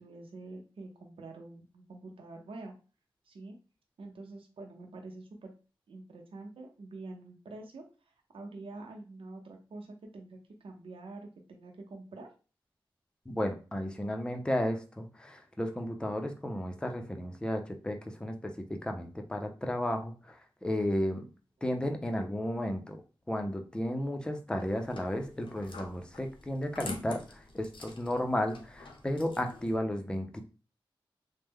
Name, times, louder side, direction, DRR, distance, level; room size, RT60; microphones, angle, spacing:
voice 1, 0.0-2.7 3.2-3.6 4.0-5.5 5.9-12.3, right 2 dB, 90° right, 2 dB, 0.7 m, -46 dB
voice 2, 13.3-21.3 21.6-23.0 23.3-30.4, left 1 dB, 10° left, 4 dB, 0.5 m, -33 dB
sound 1, 24.6-29.8, left 3 dB, 65° left, 0.6 m, -47 dB
3.2 x 2.1 x 3.5 m, 0.34 s
wide cardioid pair, 110°, 9 cm